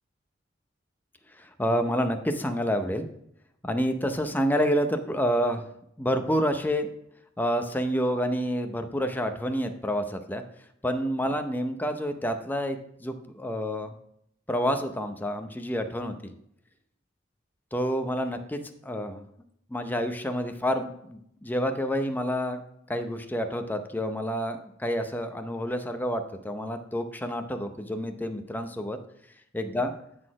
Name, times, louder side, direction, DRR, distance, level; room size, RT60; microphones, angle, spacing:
voice 1, 1.4-3.1 3.6-5.6 6.0-6.9 7.4-10.4 10.8-13.9 14.5-16.3 17.7-19.2 19.7-22.6 22.9-29.0 29.5-29.9, equal, 10° left, 7 dB, 0.6 m, -28 dB
9.5 x 4.2 x 4.7 m, 0.74 s
head